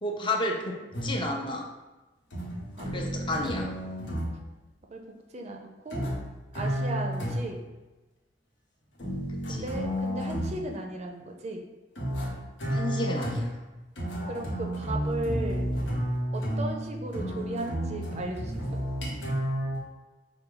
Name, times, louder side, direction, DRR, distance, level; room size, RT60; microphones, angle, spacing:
voice 1, 0.0-0.8 1.0-1.7 2.9-3.7 9.3-9.6 12.7-13.5, left 1 dB, 25° left, 0 dB, 0.5 m, -31 dB
sound 1, 0.9-1.4 2.3-4.4 5.9-7.7 9.0-10.7 11.9-19.8, equal, 90° left, 1.2 m, -31 dB
voice 2, 5.3-6.0 6.5-7.6 9.5-11.6 14.3-15.7 16.3-18.5, right 2 dB, 40° right, 2 dB, 0.5 m, -36 dB
5.5 x 2.2 x 3.8 m, 1.1 s
head